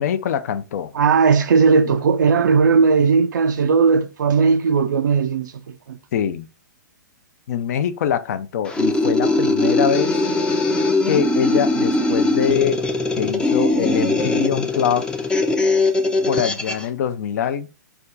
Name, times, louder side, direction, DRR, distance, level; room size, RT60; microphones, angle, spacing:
voice 1, 0.0-0.9 1.8-1.9 6.1-6.5 7.5-10.1 11.1-12.8 13.2-15.0 16.3-17.7, left 9 dB, 55° left, 0.6 m, -23 dB
voice 2, 0.9-6.0, right 5 dB, 75° right, 0.4 m, -17 dB
sound 1, 8.7-16.9, left 2 dB, 10° left, 0.5 m, -20 dB
4.3 x 2.4 x 3.8 m
hypercardioid pair, 120°, 10 cm